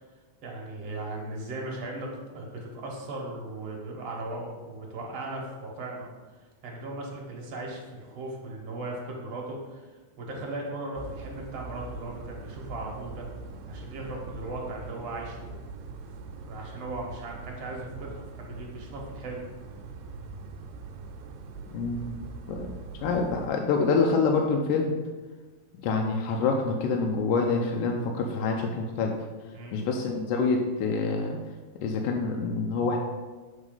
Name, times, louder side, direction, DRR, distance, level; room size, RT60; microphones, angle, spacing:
voice 1, 0.4-6.1 6.6-13.3 13.7-15.6 16.4-19.4 29.5-29.8, right 2 dB, 60° right, -2 dB, 1.9 m, -37 dB
sound 1, 10.9-23.5, right 4 dB, 85° right, 2.3 m, -42 dB
voice 2, 21.7-22.7 23.0-24.9 25.8-29.1 29.7-31.4 31.8-33.0, left 4 dB, 85° left, 1 dB, 2.2 m, -26 dB
7.2 x 4.1 x 5.3 m, 1.3 s
omnidirectional pair, 3.9 m